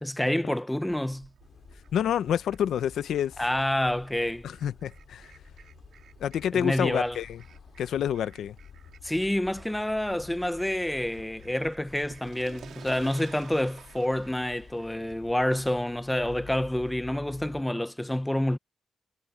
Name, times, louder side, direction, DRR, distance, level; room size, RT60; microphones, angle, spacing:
voice 1, 0.0-1.3 3.4-4.5 6.5-7.2 9.0-18.6, left 1 dB, 5° left, 0.8 m, -28 dB
Fowl, 0.8-17.1, right 8 dB, 70° right, 4.5 m, -54 dB
sound 1, 1.4-17.6, left 7 dB, 50° left, 4.0 m, -51 dB
voice 2, 1.9-3.3 4.4-5.3 6.2-7.4 7.8-8.5, left 9 dB, 85° left, 0.8 m, -28 dB
wide cardioid pair, 150°, 0 cm